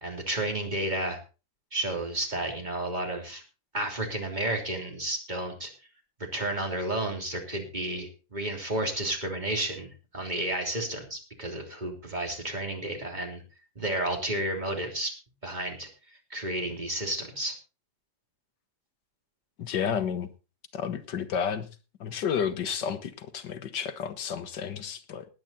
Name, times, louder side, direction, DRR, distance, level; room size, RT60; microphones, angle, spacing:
voice 1, 0.0-1.2 1.7-3.4 3.7-5.7 6.3-13.4 13.7-15.1 15.4-15.9 16.3-17.5, right 1 dB, 25° right, 3 dB, 3.3 m, -31 dB
voice 2, 19.6-20.3 20.7-21.7 22.0-25.3, left 7 dB, 70° left, 11 dB, 1.8 m, -31 dB
19.0 x 9.0 x 4.1 m, 0.32 s
omnidirectional pair, 2.0 m